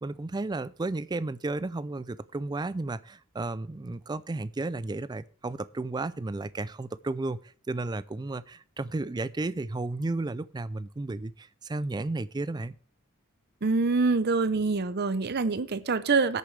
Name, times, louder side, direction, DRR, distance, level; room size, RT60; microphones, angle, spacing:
voice 1, 0.0-7.4 7.7-12.7, right 2 dB, 20° right, 16 dB, 0.4 m, -33 dB
voice 2, 13.6-16.4, right 4 dB, 50° right, 14 dB, 0.7 m, -25 dB
20.0 x 6.8 x 3.3 m, 0.42 s
head